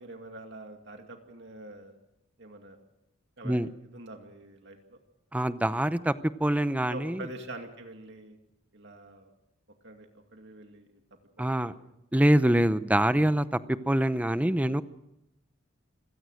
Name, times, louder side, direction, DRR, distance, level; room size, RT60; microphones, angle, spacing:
voice 1, 0.0-1.9 2.4-2.8 3.4-5.0 6.8-8.4 8.7-9.3 9.8-10.9 11.4-11.9, right 2 dB, 60° right, 4 dB, 2.3 m, -45 dB
voice 2, 5.3-6.1 6.4-7.2 11.4-11.7 12.1-13.6 13.9-14.8, right 1 dB, 5° right, 13 dB, 0.7 m, -24 dB
27.0 x 17.5 x 6.4 m, 0.89 s
head